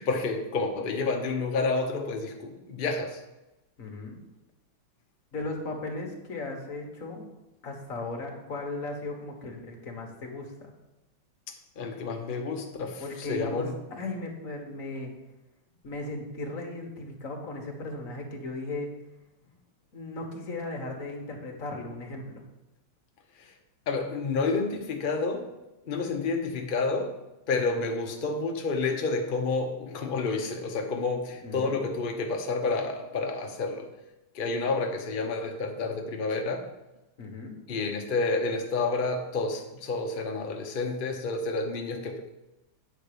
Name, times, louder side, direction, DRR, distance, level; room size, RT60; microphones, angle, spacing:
voice 1, 0.0-3.2 11.8-13.8 23.4-23.5 23.9-25.5 25.9-27.2 27.5-33.9 34.3-36.7 37.7-42.3, left 3 dB, 65° left, 3 dB, 0.5 m, -29 dB
voice 2, 3.8-4.2 5.3-7.3 7.6-10.7 13.0-15.1 15.8-18.9 19.9-22.4 31.4-31.8 37.2-37.5, left 2 dB, 45° left, 1 dB, 1.7 m, -36 dB
9.0 x 4.5 x 6.8 m, 0.98 s
omnidirectional pair, 2.1 m